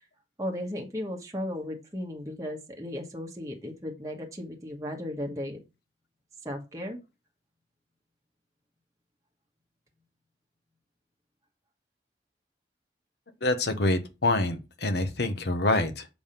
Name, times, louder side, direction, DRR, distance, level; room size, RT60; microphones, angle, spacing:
voice 1, 0.4-5.6 6.4-7.0, left 1 dB, 20° right, 1.2 m, -35 dB
voice 2, 13.4-16.1, left 2 dB, 60° left, 1.0 m, -26 dB
7.1 x 3.5 x 5.7 m
head